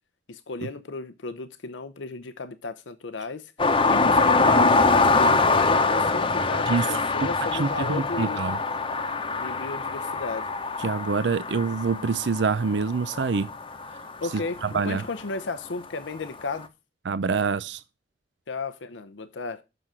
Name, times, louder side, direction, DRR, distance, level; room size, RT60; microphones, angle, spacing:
voice 1, 0.3-4.8 5.1-8.4 9.4-10.5 14.2-16.7 18.5-19.6, left 3 dB, 90° left, 0.7 m, -35 dB
sound 1, 3.6-15.0 16.5-16.6, left 3 dB, 30° left, 0.9 m, -24 dB
voice 2, 7.2-8.6 10.8-13.5 14.6-15.0 17.1-17.8, right 5 dB, 70° right, 0.5 m, -26 dB
7.8 x 6.4 x 7.3 m
head